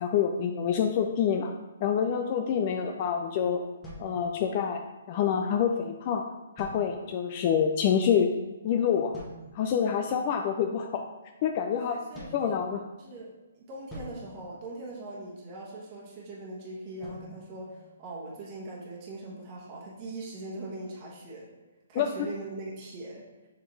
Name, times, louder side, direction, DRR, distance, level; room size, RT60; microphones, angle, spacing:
voice 1, 0.0-1.5 1.8-3.6 4.0-4.8 5.1-6.2 6.6-8.3 8.6-9.2 9.5-11.1 11.4-12.0 12.3-12.8 21.9-22.1, left 8 dB, 30° left, 4 dB, 0.4 m, -27 dB
sound 1, 3.8-4.9 6.6-7.4 9.1-9.8 12.1-13.2 13.9-15.4 17.0-18.5, equal, 5° left, 1.3 m, -47 dB
voice 2, 11.8-12.6 13.0-21.5 21.9-23.2, right 2 dB, 25° right, -5 dB, 1.2 m, -41 dB
6.8 x 4.4 x 3.3 m, 1.1 s
hypercardioid pair, 170°, 0 cm